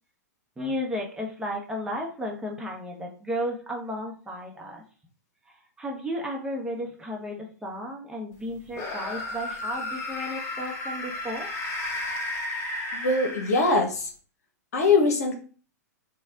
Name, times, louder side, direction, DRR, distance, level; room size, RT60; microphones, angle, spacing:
voice 1, 0.6-4.8 5.8-11.5, equal, 10° right, -1 dB, 0.9 m, -33 dB
sound 1, 8.7-13.9, left 2 dB, 30° left, 1.0 m, -33 dB
voice 2, 12.9-14.1 14.7-15.4, left 3 dB, 65° left, 4 dB, 1.0 m, -22 dB
4.1 x 2.3 x 3.7 m, 0.40 s
figure-of-eight pair, 105°, 9 cm